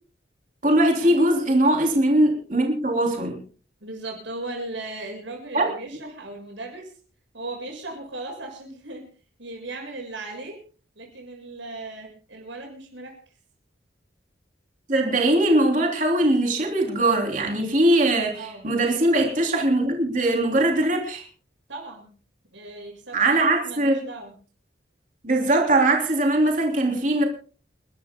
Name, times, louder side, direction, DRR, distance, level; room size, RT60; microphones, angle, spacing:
voice 1, 0.6-3.4 5.5-5.7 14.9-21.2 23.1-24.0 25.2-27.2, right 1 dB, 40° right, 1 dB, 3.3 m, -21 dB
voice 2, 3.8-6.9 7.3-9.0 9.4-10.6 10.9-13.2 18.3-18.7 21.7-22.1 22.5-24.3, right 2 dB, 75° right, 2 dB, 6.8 m, -37 dB
29.5 x 12.5 x 2.3 m, 0.39 s
head